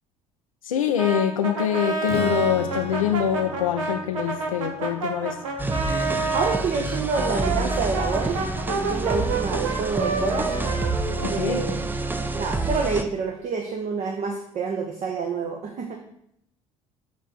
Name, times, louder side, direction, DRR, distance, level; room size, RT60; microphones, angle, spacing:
voice 1, 0.6-5.4 11.2-11.6, left 9 dB, 75° left, 5 dB, 0.5 m, -24 dB
Brass instrument, 1.0-6.6 7.1-11.9, right 3 dB, 70° right, 1.1 m, -29 dB
Strum, 2.1-7.7, left 6 dB, 35° left, 0.7 m, -38 dB
sound 1, 5.6-13.0, right 2 dB, 10° right, 0.6 m, -28 dB
voice 2, 6.3-8.4 8.9-10.5 11.3-11.8 12.3-16.0, right 5 dB, 40° right, 3 dB, 1.0 m, -27 dB
7.1 x 3.7 x 6.3 m, 0.73 s
figure-of-eight pair, 60°, 18 cm